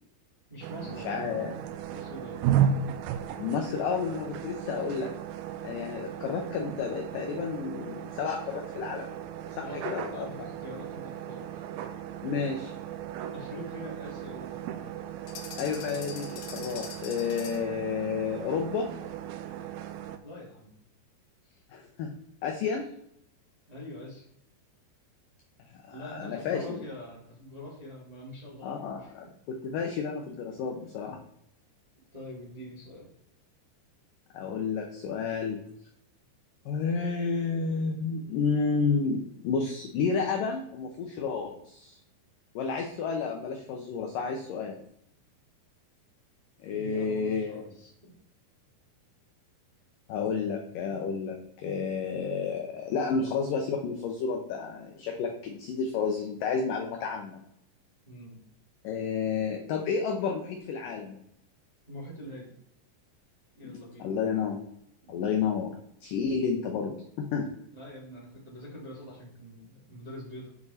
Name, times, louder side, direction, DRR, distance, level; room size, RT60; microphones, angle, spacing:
voice 1, 0.5-1.3 1.9-2.8 9.6-11.6 13.3-14.6 20.2-20.7 21.4-21.6 23.7-24.2 25.9-29.3 32.1-33.1 46.7-48.1 58.0-58.4 61.9-62.5 63.6-64.1 65.0-65.1 67.7-70.5, equal, 15° right, -6 dB, 1.5 m, -44 dB
sound 1, 0.6-20.2, right 9 dB, 85° right, 2.2 m, -35 dB
voice 2, 1.0-1.6 3.4-5.1 5.6-9.2 9.6-10.3 12.2-12.7 15.6-18.9 21.7-22.1 22.4-22.9 25.7-26.8 28.6-31.2 34.3-35.6 36.7-42.0 42.6-44.8 46.6-47.7 50.1-57.4 58.8-61.1 63.6-64.6 65.1-65.8 66.0-67.5, left 5 dB, 85° left, 3 dB, 1.9 m, -31 dB
sound 2, 15.3-17.8, left 6 dB, 70° left, 2.5 m, -43 dB
7.7 x 6.9 x 4.2 m, 0.75 s
omnidirectional pair, 5.0 m